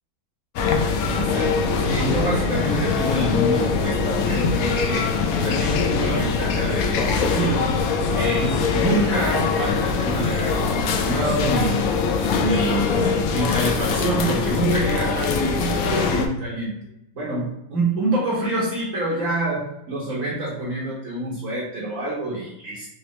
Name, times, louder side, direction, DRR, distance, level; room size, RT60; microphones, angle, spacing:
sound 1, 0.6-16.3, left 5 dB, 80° left, 0.7 m, -22 dB
voice 1, 1.1-5.1 5.4-7.7 8.1-16.7 17.1-22.8, right 2 dB, 50° right, -6 dB, 1.4 m, -26 dB
4.1 x 3.0 x 3.1 m, 0.84 s
omnidirectional pair, 2.0 m